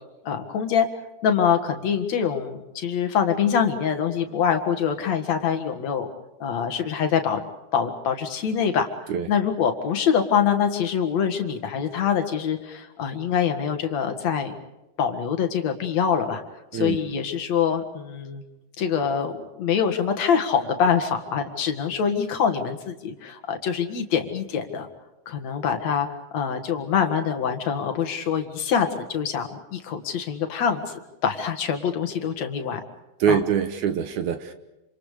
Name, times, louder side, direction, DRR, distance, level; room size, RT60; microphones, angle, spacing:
voice 1, 0.2-0.9 1.2-6.1 6.4-7.4 7.7-8.9 9.3-14.5 15.0-16.4 16.7-18.4 18.8-24.9 25.3-26.1 26.3-32.8 33.3-33.4, left 7 dB, 50° left, 6 dB, 2.7 m, -24 dB
voice 2, 33.2-34.5, right 8 dB, 65° right, 9 dB, 2.1 m, -24 dB
28.0 x 27.0 x 5.1 m, 1.0 s
omnidirectional pair, 4.5 m